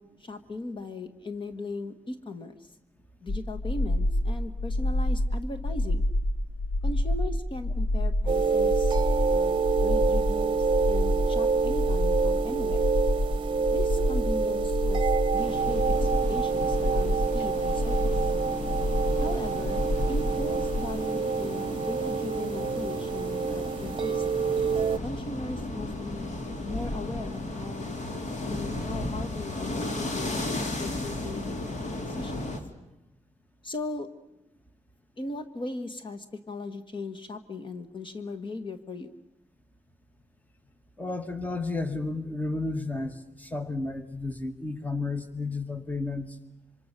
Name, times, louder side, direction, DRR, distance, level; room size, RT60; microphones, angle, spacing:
voice 1, 0.0-2.7 3.2-6.1 6.8-9.0 9.3-12.9 13.7-18.3 19.2-24.2 25.0-26.3 26.6-27.9 28.4-30.5 30.8-31.5 31.8-32.5 33.6-34.1 35.2-39.1, left 2 dB, 40° left, 8 dB, 1.5 m, -38 dB
sound 1, 3.3-20.9, left 1 dB, 90° left, 1.7 m, -28 dB
sound 2, 8.3-25.0, right 5 dB, 45° right, 1.0 m, -27 dB
sound 3, 15.3-32.6, left 2 dB, 70° left, 3.2 m, -35 dB
voice 2, 41.0-46.4, left 3 dB, 10° left, 9 dB, 1.6 m, -32 dB
26.5 x 25.0 x 6.8 m, 0.91 s
wide cardioid pair, 160°, 13 cm